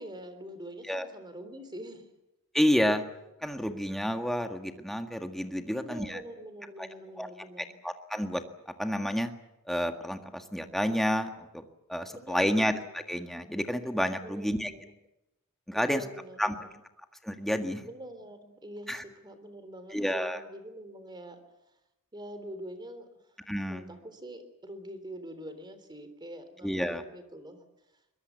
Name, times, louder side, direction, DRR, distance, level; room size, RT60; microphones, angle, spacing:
voice 1, 0.0-2.1 5.7-7.8 12.1-12.7 14.2-14.9 15.7-16.8 17.8-21.4 22.1-23.1 23.7-27.6, equal, 20° right, 10 dB, 3.5 m, -45 dB
voice 2, 2.5-3.0 3.4-6.2 7.2-7.3 7.8-8.4 8.8-9.3 9.7-11.6 11.9-12.8 13.1-14.7 15.7-16.0 16.4-16.5 17.2-17.8 18.9-19.0 19.9-20.4 23.5-23.9 26.6-27.0, equal, ahead, 5 dB, 1.8 m, -29 dB
22.5 x 21.5 x 8.2 m, 0.92 s
head